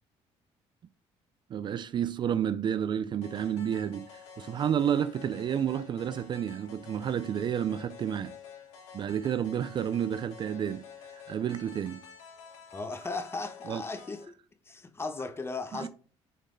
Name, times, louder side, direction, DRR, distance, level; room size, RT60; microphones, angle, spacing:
voice 1, 1.5-8.4 8.9-10.9 11.1-12.0 13.7-13.8 15.7-15.9, right 9 dB, 40° right, 0.3 m, -30 dB
sound 1, 3.2-14.2, left 7 dB, 90° left, 2.5 m, -49 dB
voice 2, 12.7-14.3 14.7-15.9, left 3 dB, 20° left, 0.8 m, -36 dB
6.7 x 4.1 x 3.7 m
cardioid pair, 110°, 12 cm